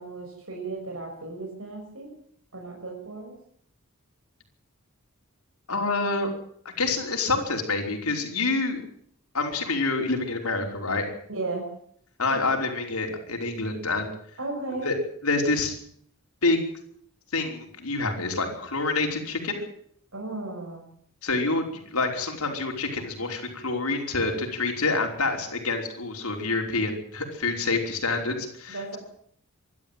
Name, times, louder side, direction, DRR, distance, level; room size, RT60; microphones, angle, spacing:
voice 1, 0.0-2.1 2.5-3.3 11.3-11.7 14.4-14.9 20.1-20.9 28.7-29.0, right 3 dB, 70° right, 0 dB, 6.2 m, -35 dB
voice 2, 5.7-6.3 6.8-8.8 9.3-11.1 12.2-14.1 14.8-14.9 15.2-15.8 16.4-16.6 17.3-19.6 21.2-29.0, left 3 dB, 85° left, 3 dB, 5.3 m, -27 dB
24.0 x 12.5 x 9.2 m, 0.64 s
head